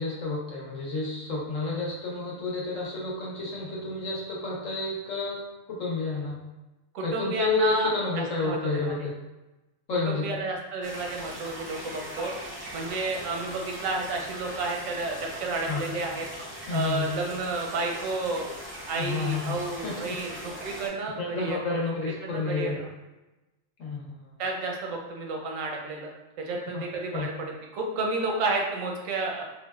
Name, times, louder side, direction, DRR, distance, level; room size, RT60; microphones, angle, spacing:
voice 1, 0.0-6.3 7.0-9.1 9.9-10.2 15.7-15.8 16.7-17.0 18.9-19.5 19.8-19.9 21.2-22.8 23.8-24.3 26.7-26.8 27.1-27.3, left 3 dB, 80° left, -4 dB, 1.2 m, -30 dB
voice 2, 6.9-7.9 8.4-8.8 10.1-16.3 16.7-18.5 18.9-21.9 22.2-22.9 24.4-26.1 26.4-29.4, right 3 dB, 85° right, 1 dB, 1.0 m, -31 dB
sound 1, 10.8-20.9, equal, 15° right, 0.4 m, -40 dB
3.7 x 2.2 x 2.3 m, 1.0 s
omnidirectional pair, 1.3 m